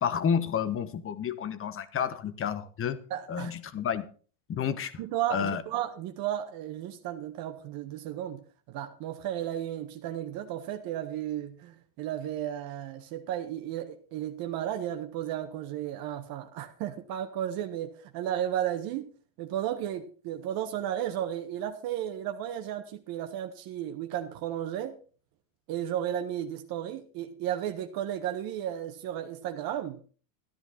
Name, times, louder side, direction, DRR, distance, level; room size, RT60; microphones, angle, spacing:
voice 1, 0.0-3.0 3.3-4.1 4.5-5.0 5.3-5.6, left 7 dB, 30° left, 1.3 m, -30 dB
voice 2, 3.1-3.5 5.0-8.4 8.7-19.1 19.4-25.0 25.7-30.0, right 11 dB, 50° right, 1.5 m, -34 dB
13.5 x 10.5 x 4.2 m
hypercardioid pair, 100°, 44 cm